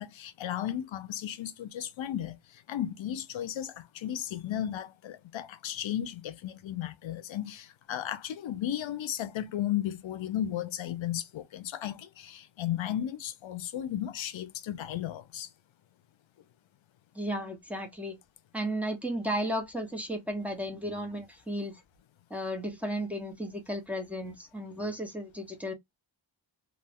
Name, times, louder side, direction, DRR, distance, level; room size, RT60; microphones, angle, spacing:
voice 1, 0.0-15.5, left 11 dB, 85° left, 0.5 m, -35 dB
voice 2, 17.1-18.2 18.5-21.7 22.3-25.7, equal, 5° right, 1.0 m, -34 dB
2.4 x 2.2 x 3.4 m
cardioid pair, 70°, 45 cm